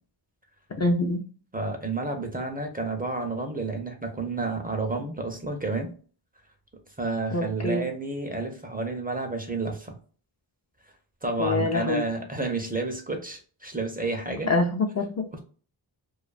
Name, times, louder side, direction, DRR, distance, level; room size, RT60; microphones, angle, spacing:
voice 1, 0.8-1.2 7.3-7.9 11.4-12.0 14.5-15.3, left 2 dB, 35° left, 3 dB, 0.4 m, -25 dB
voice 2, 1.5-5.9 7.0-10.0 11.2-14.5 15.3-15.4, right 3 dB, 20° right, 4 dB, 0.5 m, -30 dB
2.4 x 2.3 x 2.3 m, 0.40 s
wide cardioid pair, 85°, 46 cm